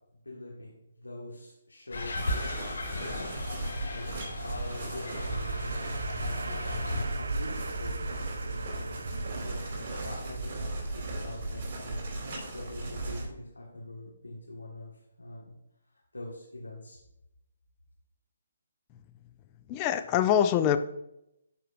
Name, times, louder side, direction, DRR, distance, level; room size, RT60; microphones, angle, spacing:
voice 1, 0.2-2.5 3.0-3.4 3.9-15.5 16.1-17.0, left 1 dB, 85° left, -5 dB, 1.6 m, -44 dB
sound 1, 1.9-7.0, left 2 dB, 70° left, 1.7 m, -36 dB
sound 2, 2.1-13.3, right 2 dB, 40° right, 2.4 m, -36 dB
sound 3, 4.0-11.1, right 4 dB, 70° right, 0.3 m, -43 dB
voice 2, 19.7-20.8, left 10 dB, 25° left, 9 dB, 0.4 m, -24 dB
12.0 x 4.5 x 2.6 m, 0.84 s
figure-of-eight pair, 140°, 0 cm